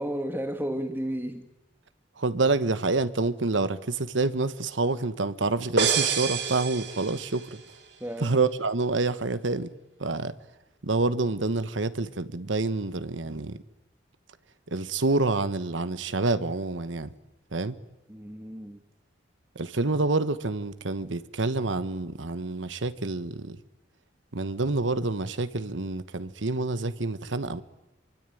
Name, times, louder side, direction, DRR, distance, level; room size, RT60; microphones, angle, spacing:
voice 1, 0.0-1.5 8.0-8.3 18.1-18.8, equal, 10° right, 1.5 m, -32 dB
voice 2, 2.2-7.6 8.2-9.7 10.0-10.3 10.8-13.6 14.7-17.1 17.5-17.8 19.5-23.6 24.3-27.6, right 3 dB, 85° right, 1.3 m, -27 dB
sound 1, 5.8-7.6, right 6 dB, 65° right, 2.9 m, -27 dB
26.0 x 24.0 x 9.2 m
head